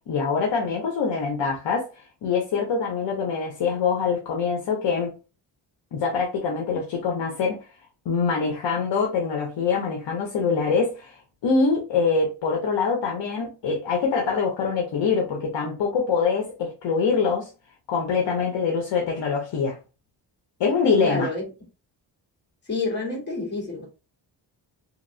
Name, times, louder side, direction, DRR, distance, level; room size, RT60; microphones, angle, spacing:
voice 1, 0.1-1.9 2.2-5.1 5.9-7.6 8.1-17.5 17.9-19.8 20.6-21.3, left 5 dB, 70° left, 0.8 m, -24 dB
voice 2, 21.0-21.4 22.6-23.9, left 3 dB, 25° left, 1.7 m, -28 dB
2.9 x 2.9 x 2.6 m
wide cardioid pair, 135°, 44 cm